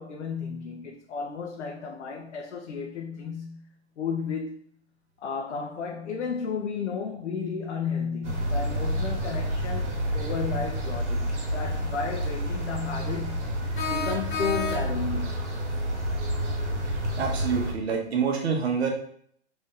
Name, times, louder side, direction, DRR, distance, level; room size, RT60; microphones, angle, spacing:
voice 1, 0.0-3.7 4.0-4.6 5.2-13.5 13.9-15.4, left 5 dB, 85° left, 0.8 m, -33 dB
sound 1, 8.2-17.7, equal, 85° right, 1.5 m, -29 dB
sound 2, 13.7-15.2, left 3 dB, 45° left, 1.1 m, -31 dB
voice 2, 17.2-18.9, right 6 dB, 65° right, 1.2 m, -26 dB
3.4 x 2.7 x 3.6 m
hypercardioid pair, 170°, 34 cm